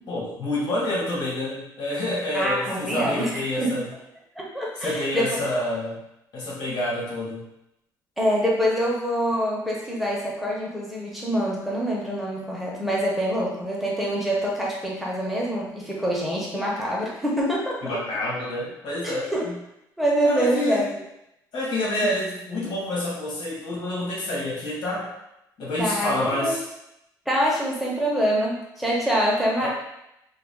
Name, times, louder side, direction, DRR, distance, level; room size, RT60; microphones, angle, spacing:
voice 1, 0.1-3.9 4.8-6.0 6.3-7.4 17.8-19.5 20.2-20.8 21.5-25.1 25.6-26.6 29.6-29.7, left 1 dB, 70° left, -5 dB, 1.2 m, -28 dB
voice 2, 2.3-3.8 4.4-5.4 8.2-18.0 19.0-19.5 20.0-20.9 22.0-22.1 25.8-26.6 27.3-29.7, equal, ahead, -4 dB, 0.7 m, -25 dB
2.4 x 2.3 x 3.5 m, 0.84 s
cardioid pair, 135°, 8 cm